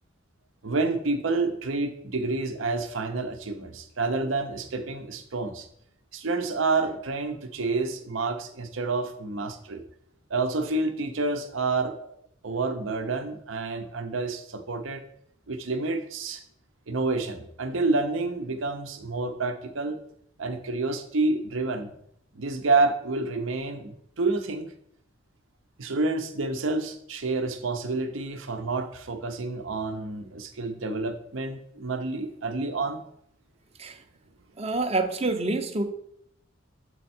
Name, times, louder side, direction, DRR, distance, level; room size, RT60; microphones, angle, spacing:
voice 1, 0.6-5.7 6.1-9.8 10.3-12.2 12.4-15.0 15.5-16.4 16.9-20.0 20.4-21.9 22.3-24.7 25.8-33.0, right 3 dB, 80° right, 7 dB, 0.8 m, -28 dB
voice 2, 34.6-35.8, right 2 dB, 30° right, 7 dB, 0.6 m, -27 dB
7.3 x 4.4 x 4.3 m, 0.70 s
head